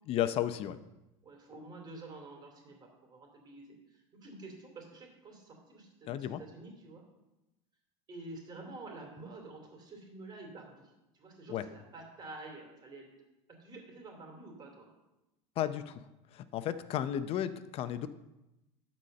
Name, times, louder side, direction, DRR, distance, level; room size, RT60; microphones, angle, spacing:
voice 1, 0.1-0.8 6.1-6.4 11.5-11.6 15.6-16.0 16.3-18.1, left 11 dB, 40° left, 13 dB, 0.6 m, -33 dB
voice 2, 1.2-7.0 8.1-13.1 13.6-14.9, right 2 dB, 30° right, 1 dB, 2.8 m, -49 dB
11.5 x 4.2 x 6.6 m, 0.98 s
supercardioid pair, 125°, 15 cm